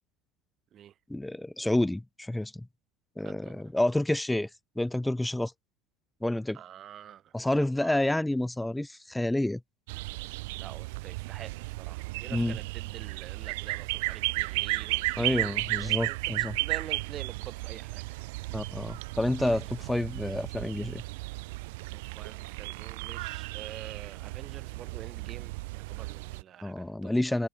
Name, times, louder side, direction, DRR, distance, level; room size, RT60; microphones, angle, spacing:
voice 1, 1.1-2.7 3.2-4.5 4.8-5.5 6.2-6.6 7.3-9.6 12.3-12.6 15.2-16.6 18.5-21.0 26.6-27.5, left 1 dB, 5° left, 1.2 m, -29 dB
voice 2, 3.2-3.6 6.5-8.0 10.6-18.2 21.9-27.2, right 10 dB, 45° right, 1.5 m, -47 dB
sound 1, 9.9-26.4, right 23 dB, 75° right, 1.3 m, -34 dB
hypercardioid pair, 85°, 0 cm